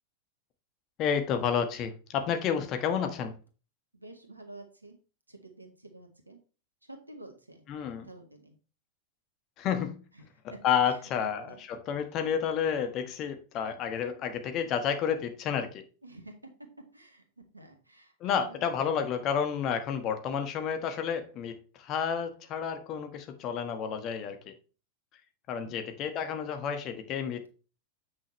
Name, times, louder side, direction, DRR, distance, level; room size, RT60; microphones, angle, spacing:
voice 1, 1.0-3.3 7.7-8.1 9.6-10.0 10.6-15.8 18.2-24.5 25.5-27.5, left 7 dB, 35° left, 1.4 m, -30 dB
voice 2, 3.9-5.0 5.3-6.4 6.9-7.7 8.0-8.6 10.1-10.3 10.9-11.6 16.0-16.3 16.9-18.7 25.6-25.7, right 2 dB, 85° right, 1.8 m, -50 dB
8.5 x 6.2 x 3.2 m
figure-of-eight pair, 90°, 0 cm